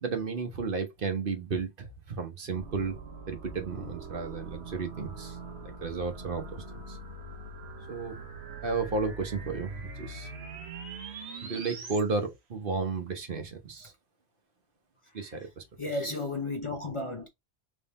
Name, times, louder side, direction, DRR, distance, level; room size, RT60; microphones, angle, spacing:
voice 1, 0.0-3.0 3.3-5.4 5.8-7.0 7.9-8.2 8.6-10.3 11.4-13.9 15.1-15.6, right 4 dB, 60° right, 1.2 m, -33 dB
sound 1, 2.5-12.0, right 3 dB, 85° right, 1.3 m, -42 dB
voice 2, 15.1-15.5 15.8-17.3, left 2 dB, 35° left, 0.7 m, -34 dB
3.6 x 3.3 x 4.1 m
omnidirectional pair, 1.1 m